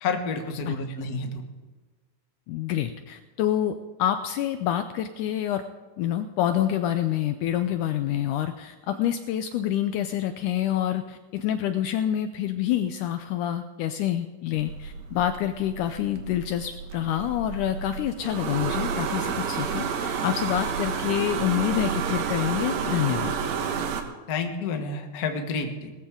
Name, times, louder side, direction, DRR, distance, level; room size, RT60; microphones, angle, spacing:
voice 1, 0.0-1.4 24.3-25.9, left 4 dB, 50° left, 4 dB, 1.0 m, -29 dB
voice 2, 0.7-1.0 2.5-5.6 6.0-23.4, left 11 dB, 80° left, 9 dB, 1.9 m, -27 dB
sound 1, 14.5-24.0, right 6 dB, 80° right, 3.0 m, -30 dB
18.5 x 14.5 x 3.7 m, 1.3 s
omnidirectional pair, 4.1 m